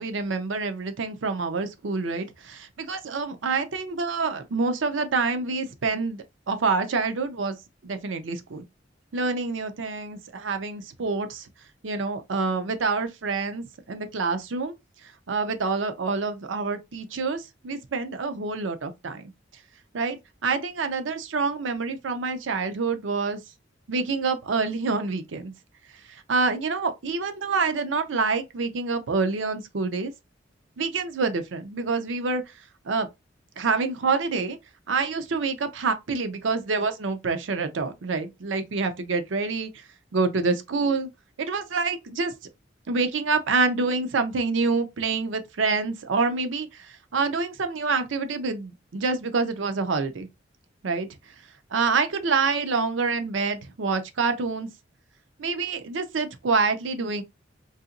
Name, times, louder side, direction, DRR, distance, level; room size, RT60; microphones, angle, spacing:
voice 1, 0.0-7.6 7.8-8.6 9.1-11.5 11.8-14.7 15.3-19.2 19.9-23.4 23.9-25.5 26.1-30.1 30.8-32.4 32.9-33.1 33.6-34.6 34.9-39.7 40.1-41.1 41.4-42.3 42.9-46.9 47.1-50.3 50.8-51.1 51.7-54.7 55.4-57.2, right 4 dB, 90° right, 0.6 m, -27 dB
4.0 x 2.8 x 2.5 m
head